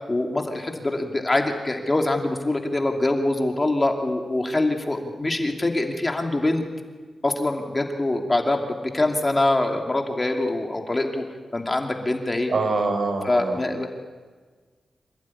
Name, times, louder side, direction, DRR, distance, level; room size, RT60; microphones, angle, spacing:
voice 1, 0.1-6.6 7.2-11.2 11.5-12.5 13.2-13.9, left 2 dB, 20° left, 3 dB, 2.5 m, -24 dB
voice 2, 12.5-13.6, right 3 dB, 55° right, 7 dB, 4.5 m, -24 dB
26.5 x 17.5 x 9.8 m, 1.4 s
wide cardioid pair, 125°, 0 cm